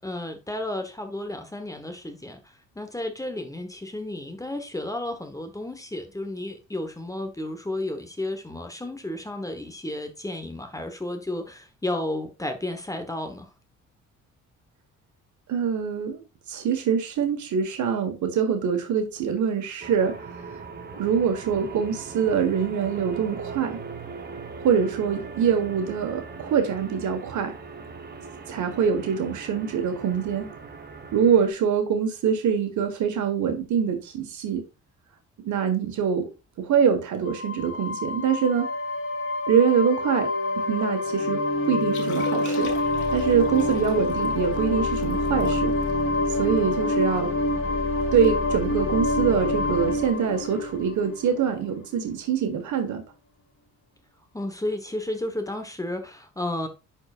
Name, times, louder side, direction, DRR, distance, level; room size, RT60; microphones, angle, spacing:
voice 1, 0.0-2.4 2.7-13.5 20.9-21.0 43.5-43.7 54.3-56.7, left 1 dB, 10° left, 1.2 m, -32 dB
voice 2, 15.5-16.2 16.5-20.1 21.0-23.8 24.6-27.5 28.5-30.5 31.1-34.6 35.4-36.3 36.6-38.7 39.5-40.3 40.6-42.7 43.1-45.7 46.4-47.3 48.1-53.0, right 7 dB, 70° right, 1.5 m, -24 dB
sound 1, 19.8-31.5, right 5 dB, 30° right, 1.1 m, -39 dB
sound 2, 37.3-51.7, left 2 dB, 45° left, 1.6 m, -26 dB
Liquid, 41.8-47.2 47.6-47.7 48.0-48.3 48.6-48.8 49.4-49.7 51.1-51.2, left 6 dB, 75° left, 1.8 m, -42 dB
10.5 x 4.5 x 2.5 m
cardioid pair, 90°, 30 cm